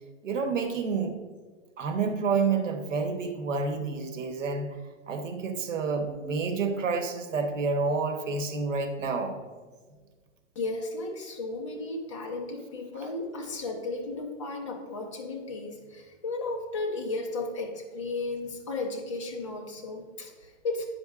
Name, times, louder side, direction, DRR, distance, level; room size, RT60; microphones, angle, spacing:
voice 1, 0.2-1.2 1.8-4.8 5.1-9.4, right 4 dB, 90° right, 6 dB, 1.0 m, -29 dB
voice 2, 10.6-20.9, left 3 dB, 25° left, 1 dB, 0.6 m, -34 dB
8.8 x 5.2 x 2.4 m, 1.4 s
hypercardioid pair, 175°, 37 cm